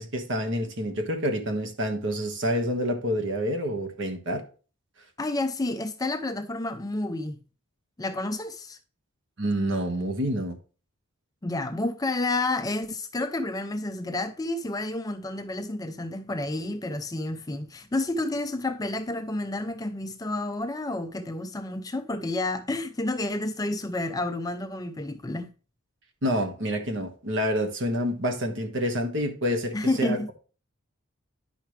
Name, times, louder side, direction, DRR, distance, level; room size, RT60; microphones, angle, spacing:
voice 1, 0.0-4.4 9.4-10.6 26.2-30.2, equal, 60° right, 1.4 m, -28 dB
voice 2, 5.2-7.4 8.0-8.8 11.4-25.5 29.7-30.3, left 2 dB, 15° left, 0.5 m, -30 dB
10.5 x 5.7 x 3.2 m
head